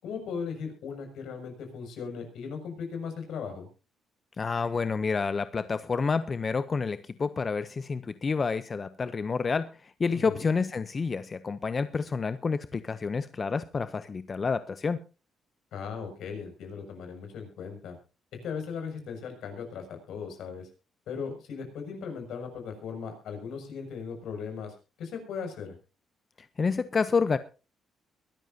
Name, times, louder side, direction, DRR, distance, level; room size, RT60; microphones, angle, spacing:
voice 1, 0.0-3.7 10.1-10.5 15.7-18.0 18.4-20.7 21.1-25.8, left 6 dB, 80° left, 5 dB, 6.5 m, -38 dB
voice 2, 4.4-15.0 26.4-27.4, left 5 dB, 35° left, 13 dB, 0.7 m, -29 dB
22.5 x 13.0 x 2.8 m, 0.33 s
cardioid pair, 90°, 0 cm